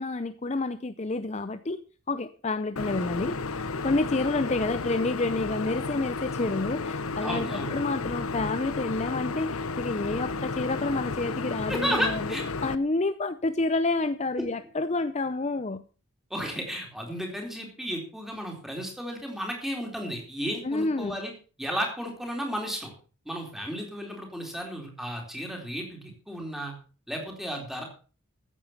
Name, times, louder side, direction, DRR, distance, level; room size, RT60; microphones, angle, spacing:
voice 1, 0.0-1.8 2.1-12.3 12.6-15.8 20.6-21.2, left 2 dB, 30° left, 11 dB, 0.6 m, -29 dB
sound 1, 2.8-12.8, left 4 dB, 85° left, 0.9 m, -32 dB
voice 2, 7.2-7.7 11.7-12.4 16.3-21.3 21.6-22.9 23.3-26.7 27.1-27.8, equal, ahead, 1 dB, 4.0 m, -33 dB
14.5 x 9.2 x 5.8 m, 0.38 s
head